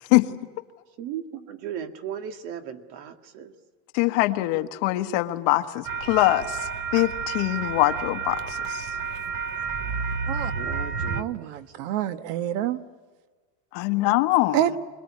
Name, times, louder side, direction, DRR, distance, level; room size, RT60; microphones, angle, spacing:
voice 1, 1.0-3.5 10.5-11.6, right 9 dB, 65° right, 8 dB, 2.0 m, -36 dB
voice 2, 3.9-6.6 6.9-8.9 13.7-14.6, left 18 dB, 70° left, 7 dB, 1.5 m, -23 dB
sound 1, 5.8-11.2, right 5 dB, 35° right, 0.8 m, -30 dB
voice 3, 11.1-12.8 14.5-14.7, right 12 dB, 85° right, 12 dB, 1.4 m, -27 dB
26.5 x 20.5 x 9.6 m, 1.4 s
cardioid pair, 180°, 36 cm